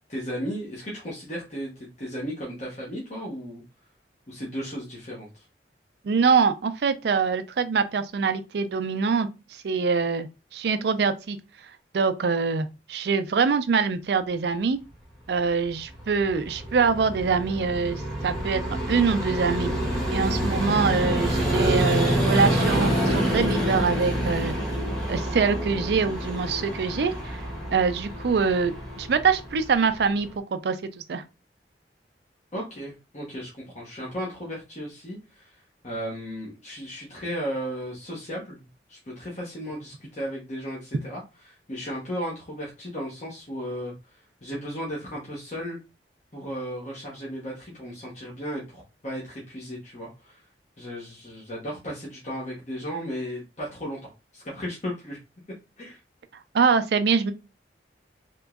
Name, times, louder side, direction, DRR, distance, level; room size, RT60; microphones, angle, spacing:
voice 1, 0.1-3.6 4.3-5.4 32.5-38.6 38.9-45.8 46.3-50.4 50.8-55.2 55.8-56.0, equal, 40° left, 0.9 m, -35 dB
voice 2, 6.0-10.3 10.5-11.4 11.9-14.8 15.3-18.6 18.9-19.7 20.1-24.5 25.1-27.4 27.7-30.8 31.1-31.2 56.5-57.3, right 5 dB, 65° right, 0.4 m, -24 dB
Vehicle, 15.6-30.3, equal, ahead, 1.0 m, -27 dB
3.5 x 2.9 x 2.3 m
head